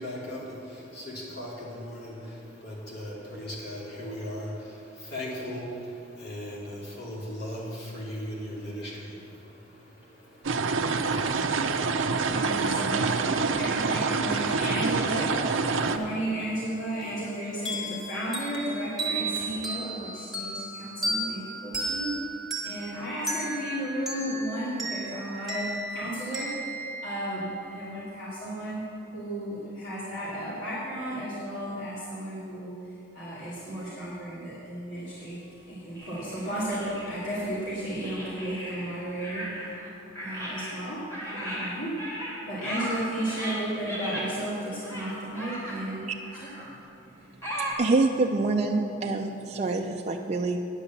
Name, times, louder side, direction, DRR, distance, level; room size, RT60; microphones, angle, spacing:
voice 1, 0.0-12.5 13.5-13.6 15.7-16.0 17.0-17.1 19.4-19.5, equal, 55° left, -4 dB, 2.8 m, -39 dB
sound 1, 10.4-16.0, right 4 dB, 80° right, 0.6 m, -26 dB
voice 2, 12.0-22.2 22.6-28.8 29.1-32.7 33.1-39.4 40.2-41.9 42.5-46.1, right 1 dB, 80° left, -9 dB, 2.9 m, -34 dB
sound 2, 17.7-27.9, right 2 dB, ahead, 1.8 m, -35 dB
sound 3, 36.0-37.4 38.0-39.9 40.2-44.3 44.8-45.9 46.2-46.7 47.4-47.7, equal, 15° left, 2.6 m, -37 dB
voice 3, 47.6-50.6, right 3 dB, 35° right, 1 dB, 0.5 m, -26 dB
9.8 x 8.3 x 7.2 m, 2.8 s
head